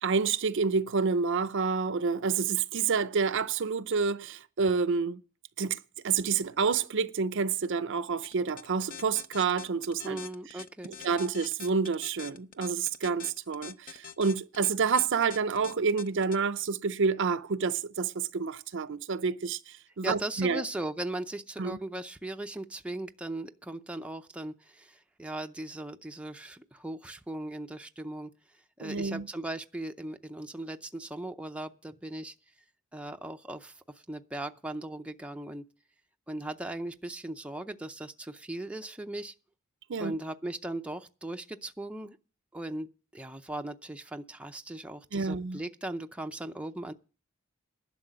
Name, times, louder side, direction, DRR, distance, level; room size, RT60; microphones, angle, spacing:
voice 1, 0.0-5.2 5.6-5.8 6.0-10.2 11.0-20.6 21.6-21.8 28.8-29.3 39.9-40.2 45.1-45.6, right 5 dB, 60° right, 0.6 m, -28 dB
sound 1, 8.2-16.4, left 8 dB, 40° left, 0.7 m, -44 dB
voice 2, 10.0-11.0 20.0-28.3 28.8-32.3 32.9-35.6 36.3-39.3 40.0-42.2 42.5-46.9, right 1 dB, 5° right, 0.5 m, -38 dB
11.5 x 6.4 x 9.0 m
head